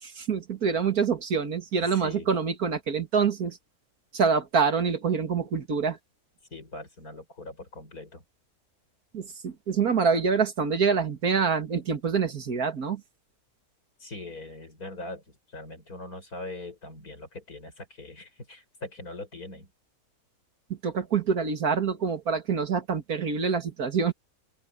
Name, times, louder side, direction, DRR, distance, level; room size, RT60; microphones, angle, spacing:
voice 1, 0.0-3.6 4.1-6.0 9.1-13.0 20.7-24.1, right 5 dB, 85° right, 2.5 m, -26 dB
voice 2, 1.8-2.3 6.5-8.2 14.0-19.7, left 2 dB, 90° left, 7.4 m, -41 dB
open air
omnidirectional pair, 1.5 m